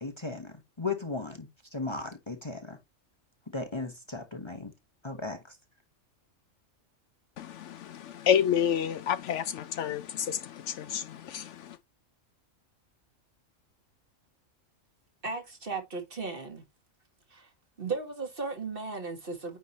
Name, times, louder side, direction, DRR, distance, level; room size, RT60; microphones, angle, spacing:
voice 1, 0.0-2.8 3.5-4.7 5.0-5.6, left 3 dB, 25° left, 0.9 m, -36 dB
voice 2, 7.4-11.8, left 9 dB, 70° left, 0.9 m, -29 dB
voice 3, 15.2-16.6 17.3-17.5 17.8-19.6, right 4 dB, 45° right, 1.7 m, -36 dB
9.3 x 3.1 x 4.1 m
omnidirectional pair, 1.4 m